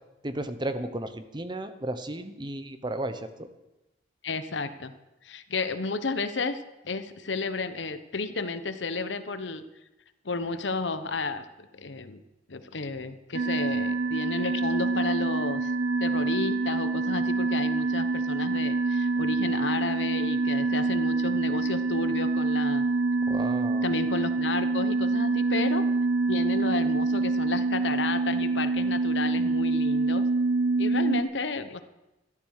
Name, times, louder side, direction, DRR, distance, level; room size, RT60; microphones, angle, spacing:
voice 1, 0.2-3.5 23.3-23.9, right 1 dB, 25° right, 10 dB, 1.0 m, -34 dB
voice 2, 4.2-4.9 5.2-9.6 10.2-12.2 12.5-15.7 16.0-22.9 23.8-25.8 26.3-30.2 30.8-31.8, left 3 dB, 80° left, 10 dB, 1.0 m, -32 dB
sound 1, 13.3-31.2, right 3 dB, 80° right, 0.8 m, -26 dB
13.5 x 12.0 x 6.6 m, 0.98 s
head